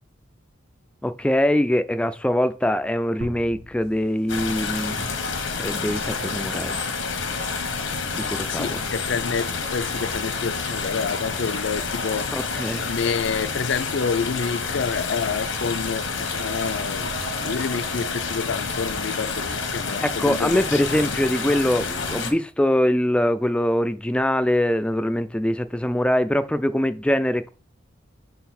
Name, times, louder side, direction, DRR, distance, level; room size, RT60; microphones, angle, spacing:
voice 1, 1.0-5.2 5.6-6.8 8.1-8.8 12.3-12.9 20.0-27.5, left 1 dB, 5° left, 0.3 m, -23 dB
sound 1, 3.2-5.6, right 1 dB, 85° right, 1.2 m, -42 dB
sound 2, 3.8-21.8, right 4 dB, 55° right, 0.8 m, -45 dB
sound 3, 4.3-22.3, left 4 dB, 85° left, 1.2 m, -29 dB
voice 2, 8.5-17.1 17.4-21.1, left 5 dB, 70° left, 0.5 m, -28 dB
6.2 x 3.8 x 4.3 m
head